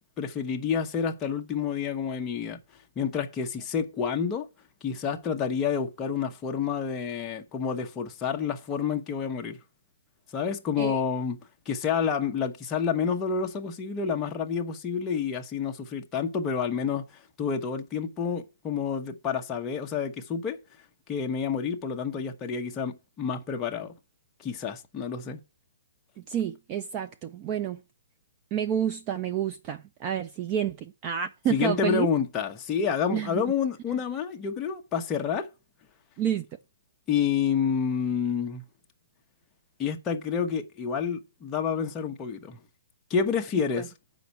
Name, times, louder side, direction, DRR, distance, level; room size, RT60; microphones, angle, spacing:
voice 1, 0.2-2.6 3.0-4.5 4.8-9.6 10.3-11.4 11.7-17.0 17.4-20.6 21.1-23.9 24.4-25.4 31.5-35.5 37.1-38.6 39.8-42.6 43.1-43.9, left 6 dB, 15° left, 0.8 m, -29 dB
voice 2, 26.3-27.8 28.5-32.1 33.1-33.4 36.2-36.5 43.8-43.9, right 9 dB, 20° right, 0.4 m, -29 dB
7.5 x 5.2 x 6.8 m
hypercardioid pair, 170°, 0 cm